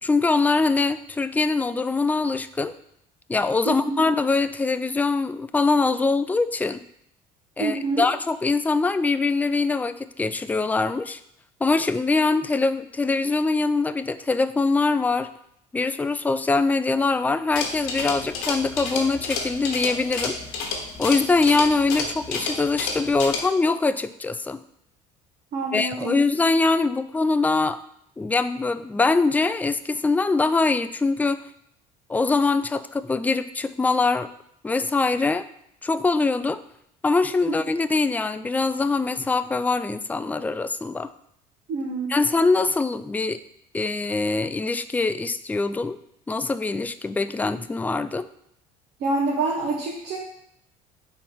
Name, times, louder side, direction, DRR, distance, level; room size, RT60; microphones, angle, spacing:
voice 1, 0.0-2.7 3.3-6.8 7.6-11.2 11.6-15.3 15.7-20.4 21.0-24.6 25.7-27.8 28.2-31.4 32.1-34.3 34.6-35.5 35.8-36.6 37.0-41.1 42.1-43.4 43.7-46.0 46.3-48.3, left 3 dB, 10° left, 11 dB, 0.3 m, -23 dB
voice 2, 3.6-4.0 7.6-8.1 25.5-26.2 41.7-42.1 49.0-50.2, right 3 dB, 60° right, -3 dB, 1.3 m, -26 dB
sound 1, 17.5-23.4, left 4 dB, 80° left, 1.1 m, -30 dB
4.5 x 4.3 x 5.6 m, 0.73 s
hypercardioid pair, 70°, 18 cm